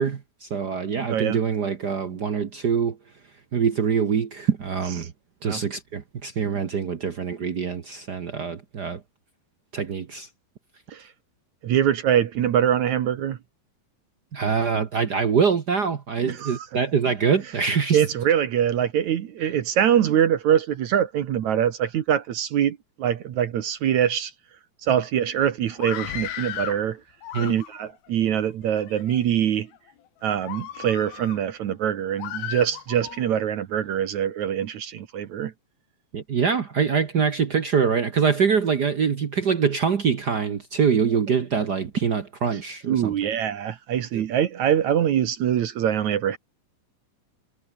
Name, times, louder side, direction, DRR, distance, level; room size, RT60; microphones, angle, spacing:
voice 1, 0.0-3.0 3.5-5.1 5.4-9.0 9.7-10.3 14.3-18.0 27.3-27.5 36.1-43.1 44.1-44.2, right 6 dB, 80° right, 0.9 m, -24 dB
voice 2, 1.1-1.4 5.4-5.6 10.9-11.1 11.6-13.4 16.3-16.7 17.9-24.3 24.8-27.0 27.4-29.7 30.2-35.5 42.9-46.4, right 9 dB, 60° right, 2.4 m, -23 dB
Screaming, 25.7-26.8 27.2-28.0 28.6-29.2 29.7-29.9 30.4-31.4 32.2-33.2, left 11 dB, 85° left, 3.6 m, -35 dB
omnidirectional pair, 4.2 m